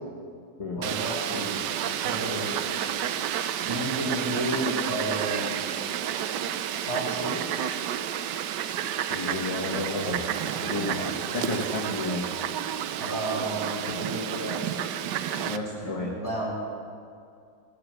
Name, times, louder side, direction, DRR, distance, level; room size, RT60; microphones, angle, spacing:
voice 1, 0.7-1.6 2.0-2.6 3.7-5.6 6.8-7.5 10.9-11.1 13.0-14.7 15.8-16.5, right 1 dB, 10° right, -6 dB, 4.1 m, -32 dB
Fowl, 0.8-15.6, right 10 dB, 85° right, 1.3 m, -30 dB
voice 2, 9.1-10.2 10.6-12.2 14.7-14.8 15.4-16.1, left 2 dB, 20° left, -3 dB, 1.3 m, -32 dB
18.0 x 8.7 x 7.6 m, 2.3 s
omnidirectional pair, 1.8 m